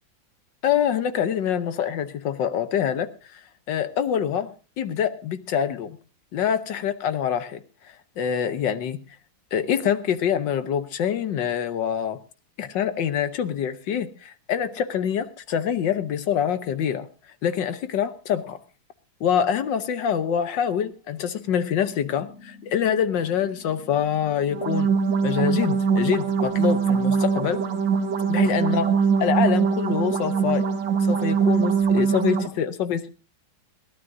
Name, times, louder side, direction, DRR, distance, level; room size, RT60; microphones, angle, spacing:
voice 1, 0.6-3.4 3.7-6.0 6.3-7.6 8.2-9.0 9.5-12.2 12.6-17.1 17.4-18.6 19.2-25.0 25.2-27.6 28.3-30.7 31.1-33.1, left 8 dB, 65° left, 12 dB, 1.5 m, -25 dB
sound 1, 21.8-31.8, left 4 dB, 85° left, 4.2 m, -48 dB
sound 2, 24.5-32.5, right 6 dB, 65° right, 2.2 m, -22 dB
22.0 x 15.5 x 2.6 m, 0.33 s
omnidirectional pair, 2.2 m